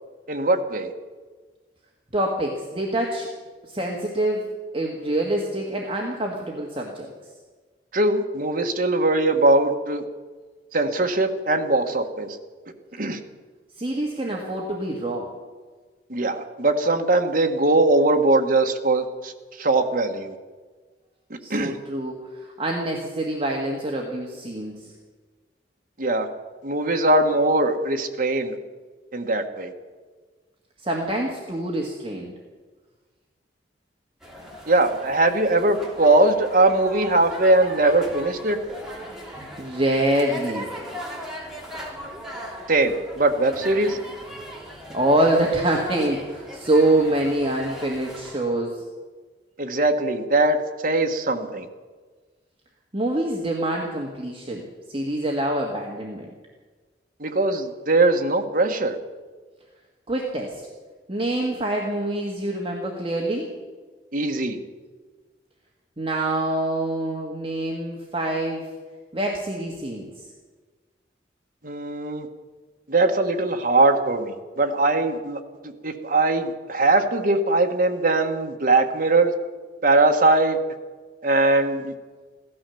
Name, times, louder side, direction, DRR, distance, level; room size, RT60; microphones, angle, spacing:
voice 1, 0.3-0.9 7.9-10.0 10.7-12.4 13.0-13.2 16.1-20.4 21.5-21.8 26.0-26.3 26.6-28.6 29.1-29.7 34.7-38.6 42.7-44.0 49.6-50.6 50.8-51.7 57.2-59.0 64.1-64.6 71.6-72.3 72.9-79.3 79.8-80.6 81.2-81.9, right 2 dB, 50° right, 4 dB, 1.5 m, -21 dB
voice 2, 2.1-3.3 3.6-7.1 13.8-15.3 21.4-24.9 30.8-32.3 39.6-40.7 44.9-48.8 52.9-56.3 60.1-60.6 61.1-63.5 66.0-68.7 69.1-70.2, right 1 dB, 30° right, -1 dB, 1.7 m, -25 dB
sound 1, 34.2-48.4, equal, ahead, 3.1 m, -38 dB
16.5 x 12.5 x 7.0 m, 1.4 s
head